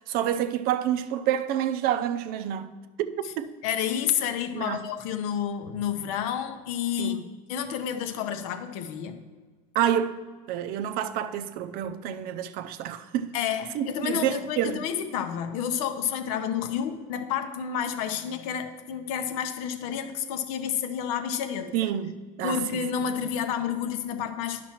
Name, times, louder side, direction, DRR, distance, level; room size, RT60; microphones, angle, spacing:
voice 1, 0.1-2.7 3.0-3.5 4.5-4.8 7.0-7.3 9.7-10.1 10.5-13.3 13.7-14.8 21.7-22.8, right 10 dB, 55° right, 0.5 m, -28 dB
voice 2, 3.6-9.2 13.3-21.8 22.4-24.6, left 8 dB, 75° left, 0.7 m, -30 dB
10.0 x 5.9 x 3.0 m
supercardioid pair, 115°, 18 cm